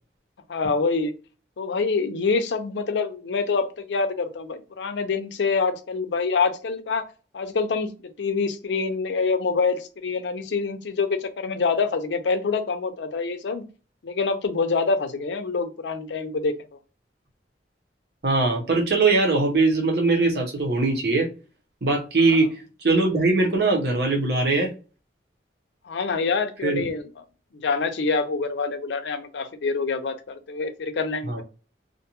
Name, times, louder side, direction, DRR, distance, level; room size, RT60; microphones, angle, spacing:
voice 1, 0.5-1.1 1.6-7.0 7.3-13.6 14.0-16.5 22.3-22.5 25.8-27.1 27.5-31.4, left 4 dB, 85° left, 0.5 m, -26 dB
voice 2, 18.2-21.3 21.8-22.5 22.8-24.7 26.6-26.9 31.3-31.4, right 3 dB, 65° right, 0.8 m, -21 dB
2.5 x 2.2 x 2.9 m
head